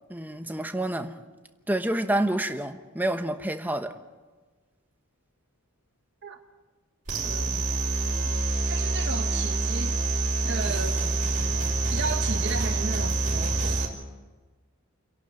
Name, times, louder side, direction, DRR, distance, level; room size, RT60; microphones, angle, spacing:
voice 1, 0.1-1.2 1.7-3.9, right 1 dB, 10° right, 1.1 m, -28 dB
sound 1, 7.1-13.9, right 2 dB, 35° right, 4.6 m, -26 dB
voice 2, 7.2-7.6 8.2-9.9 10.4-11.0 11.9-14.0, right 4 dB, 50° right, 1.4 m, -35 dB
29.5 x 11.5 x 9.0 m
head